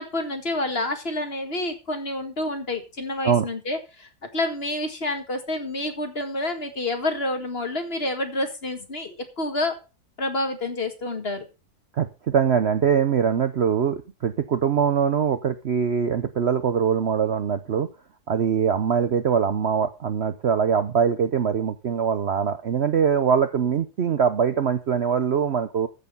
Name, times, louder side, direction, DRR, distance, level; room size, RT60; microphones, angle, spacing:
voice 1, 0.0-9.8 10.2-11.4, left 2 dB, 35° left, 6 dB, 2.0 m, -28 dB
voice 2, 12.0-17.9 18.3-25.9, right 7 dB, 55° right, 11 dB, 0.8 m, -22 dB
14.0 x 6.7 x 5.4 m, 0.30 s
omnidirectional pair, 1.7 m